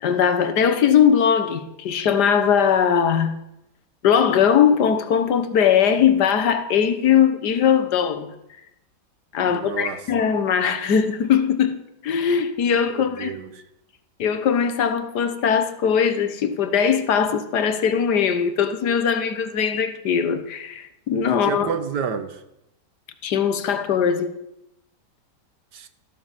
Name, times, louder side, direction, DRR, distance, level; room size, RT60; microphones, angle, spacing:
voice 1, 0.0-3.4 4.0-8.3 9.3-13.3 14.2-21.7 23.2-24.3, left 7 dB, 70° left, 1.8 m, -20 dB
voice 2, 9.4-10.0 12.9-13.6 21.4-22.4 25.7-25.9, right 6 dB, 70° right, 1.8 m, -30 dB
14.5 x 13.0 x 7.3 m
omnidirectional pair, 1.9 m